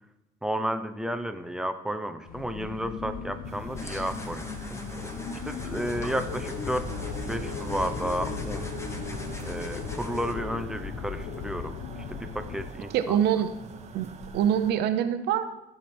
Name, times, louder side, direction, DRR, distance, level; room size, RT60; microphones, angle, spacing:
voice 1, 0.4-5.1 5.4-8.7 9.4-11.8 12.1-13.2, right 1 dB, 5° right, 8 dB, 0.7 m, -32 dB
sound 1, 2.3-12.7, left 7 dB, 60° left, 0.7 m, -37 dB
sound 2, 3.4-14.7, right 5 dB, 40° right, 0.9 m, -43 dB
sound 3, 3.8-10.3, left 2 dB, 15° left, 1.2 m, -42 dB
voice 2, 12.9-13.5 13.9-15.4, right 9 dB, 80° right, 10 dB, 0.7 m, -25 dB
14.5 x 5.0 x 4.3 m, 0.99 s
cardioid pair, 110°, 17 cm